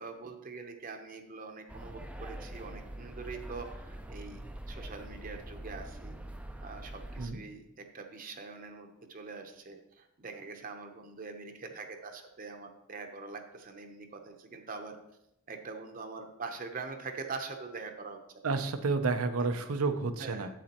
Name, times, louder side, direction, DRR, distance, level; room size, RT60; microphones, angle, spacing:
voice 1, 0.0-6.1 6.6-15.0 15.5-18.2 19.4-19.5 20.2-20.5, right 4 dB, 40° right, 5 dB, 0.7 m, -43 dB
sound 1, 1.7-7.3, right 1 dB, 5° right, 0.4 m, -44 dB
voice 2, 18.4-20.5, right 4 dB, 90° right, 8 dB, 0.6 m, -30 dB
9.1 x 7.5 x 2.9 m, 0.84 s
head